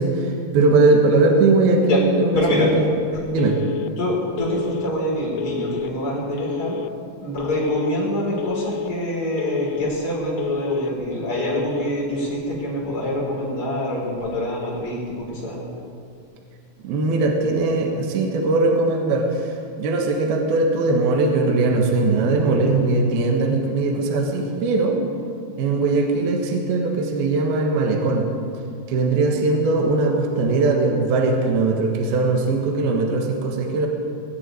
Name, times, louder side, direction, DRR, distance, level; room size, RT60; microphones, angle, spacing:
voice 1, 0.0-2.8 3.3-3.6 16.8-19.5 19.8-25.0 25.6-28.3 28.9-33.9, right 3 dB, 65° right, 2 dB, 3.0 m, -20 dB
voice 2, 2.3-2.7 4.0-6.8 7.2-15.6, equal, 20° left, -5 dB, 4.8 m, -25 dB
Telephone, 3.4-3.9 4.4-4.9 5.4-5.9 6.4-6.9 7.4-7.9 8.4-8.9 9.4-9.9 10.4-10.9 11.4-11.9, left 8 dB, 90° left, 2.4 m, -30 dB
20.5 x 7.5 x 9.4 m, 2.4 s
omnidirectional pair, 5.3 m